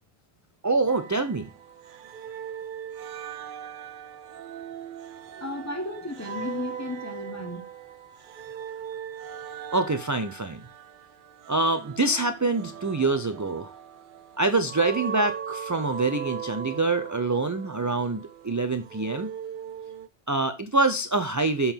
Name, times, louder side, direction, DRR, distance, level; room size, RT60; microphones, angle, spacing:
voice 1, 0.6-1.5 9.7-10.6 11.5-13.7 14.4-19.3 20.3-21.7, right 3 dB, 25° right, 0.4 m, -25 dB
sound 1, 0.9-20.1, right 8 dB, 60° right, 0.7 m, -39 dB
voice 2, 5.4-7.6, left 2 dB, 15° left, 0.9 m, -34 dB
7.0 x 5.5 x 4.5 m
omnidirectional pair, 1.1 m